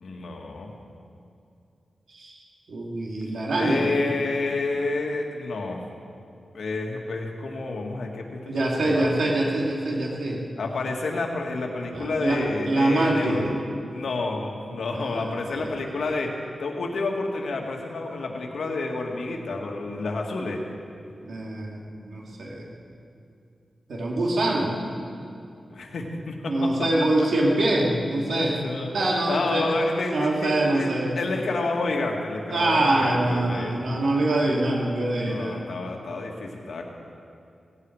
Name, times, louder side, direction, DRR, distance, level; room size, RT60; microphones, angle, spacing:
voice 1, 0.0-0.7 3.6-5.8 6.5-9.1 10.6-13.5 13.9-20.6 25.7-27.1 28.3-28.9 29.3-33.8 34.4-34.6 35.2-36.8, left 3 dB, 80° left, 1 dB, 2.0 m, -29 dB
voice 2, 2.7-3.9 8.5-10.4 11.9-13.5 14.9-15.7 21.2-22.7 23.9-24.8 26.5-28.6 28.9-29.6 30.1-31.1 32.5-35.6, right 2 dB, 75° right, -2 dB, 3.0 m, -24 dB
17.5 x 16.5 x 4.9 m, 2.5 s
wide cardioid pair, 160°, 0 cm